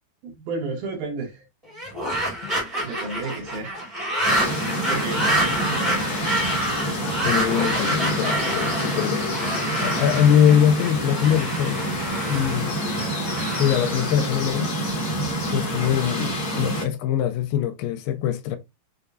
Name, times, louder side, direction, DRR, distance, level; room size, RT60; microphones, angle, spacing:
voice 1, 0.2-1.5 2.8-3.8 4.9-6.2, right 3 dB, 70° right, 2.1 m, -32 dB
sound 1, 1.7-14.9, right 1 dB, 35° right, 0.5 m, -28 dB
sound 2, 4.2-16.9, equal, 55° left, 1.0 m, -27 dB
voice 2, 7.2-9.2 9.8-11.9 12.3-12.7 13.6-15.0 15.5-18.6, left 9 dB, 85° left, 2.2 m, -22 dB
6.6 x 2.3 x 2.5 m
omnidirectional pair, 4.1 m